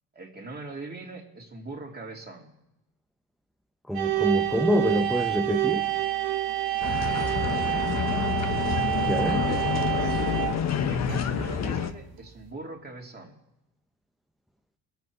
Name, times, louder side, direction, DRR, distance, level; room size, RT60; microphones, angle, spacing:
voice 1, 0.1-2.5 7.1-8.3 9.2-10.4 10.9-13.4, right 2 dB, 25° right, 0 dB, 2.8 m, -41 dB
voice 2, 3.9-5.8 9.1-9.4, equal, ahead, 4 dB, 0.7 m, -26 dB
sound 1, 3.9-11.8, right 15 dB, 75° right, 1.5 m, -28 dB
sound 2, 6.8-11.9, left 7 dB, 45° left, 1.1 m, -28 dB
22.0 x 8.3 x 4.7 m, 0.90 s
cardioid pair, 105°, 37 cm